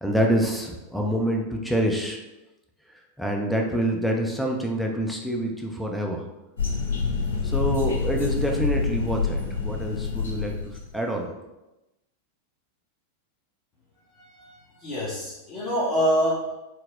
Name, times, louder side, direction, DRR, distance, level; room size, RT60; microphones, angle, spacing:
voice 1, 0.0-2.2 3.2-6.2 7.4-10.5 10.9-11.3, right 1 dB, ahead, 1 dB, 0.5 m, -26 dB
sound 1, 6.6-10.9, left 5 dB, 65° left, 0.9 m, -27 dB
voice 2, 14.1-16.5, equal, 35° left, -9 dB, 1.0 m, -26 dB
4.1 x 2.1 x 3.6 m, 0.99 s
figure-of-eight pair, 90°, 0 cm